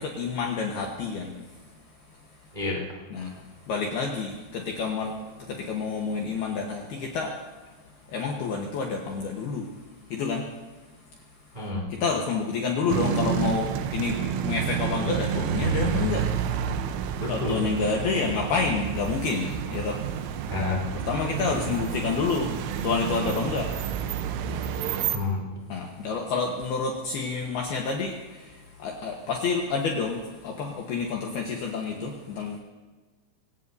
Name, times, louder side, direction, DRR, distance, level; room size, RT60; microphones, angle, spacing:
voice 1, 0.0-1.3 3.1-3.3 3.7-5.2 5.5-7.3 8.1-9.7 10.1-10.4 12.0-14.2 14.5-16.3 17.3-20.0 21.1-22.5 22.8-23.7 25.7-28.1 28.8-32.6, left 4 dB, 70° left, 0 dB, 2.6 m, -28 dB
voice 2, 2.5-3.0 11.5-11.9 17.2-17.6 20.5-20.8 25.1-25.5, left 2 dB, 15° right, -3 dB, 2.2 m, -29 dB
sound 1, 12.9-25.2, right 8 dB, 80° right, 3.2 m, -29 dB
24.5 x 17.5 x 2.7 m, 1.3 s
omnidirectional pair, 5.9 m